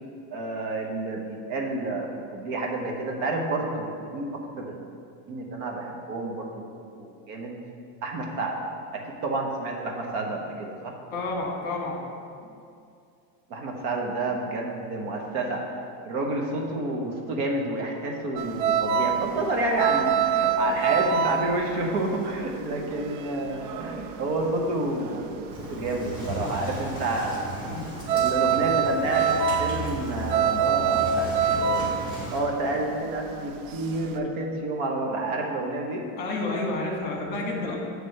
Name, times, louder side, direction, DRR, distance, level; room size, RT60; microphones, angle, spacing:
voice 1, 0.3-4.8 5.3-7.5 8.0-8.6 8.9-10.9 13.5-15.6 16.0-27.4 28.1-32.0 32.3-36.1, right 2 dB, 50° right, 1 dB, 0.9 m, -29 dB
voice 2, 11.1-12.0 12.4-12.5 27.6-27.9 36.2-37.7, left 2 dB, 25° left, -1 dB, 1.3 m, -30 dB
sound 1, 18.4-25.5 25.7-34.2, right 7 dB, 65° right, 0.5 m, -26 dB
Engine starting, 25.5-32.4, equal, 15° right, 1.5 m, -36 dB
8.1 x 3.3 x 6.4 m, 2.4 s
cardioid pair, 180°, 39 cm